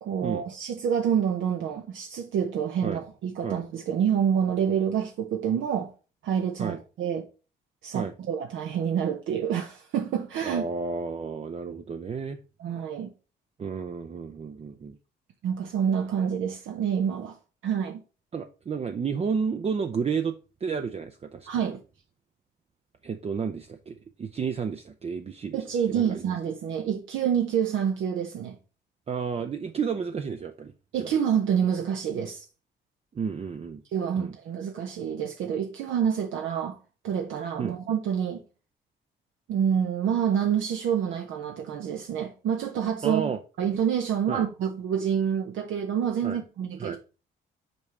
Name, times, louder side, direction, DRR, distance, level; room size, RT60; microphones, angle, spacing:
voice 1, 0.0-5.9 6.2-7.3 7.8-10.7 12.6-13.1 15.4-17.3 17.6-18.0 21.5-21.8 25.5-28.5 30.9-32.4 33.9-36.8 37.0-38.4 39.5-43.3 43.6-47.0, right 8 dB, 75° right, 0.8 m, -27 dB
voice 2, 10.4-12.4 13.6-15.0 18.3-21.5 23.0-26.3 29.1-31.1 33.1-33.8 34.2-34.3 37.6-37.8 43.0-43.4 44.3-44.4 46.2-46.4 46.8-47.0, right 6 dB, 30° right, 0.5 m, -32 dB
5.3 x 4.7 x 4.2 m
cardioid pair, 90°, 20 cm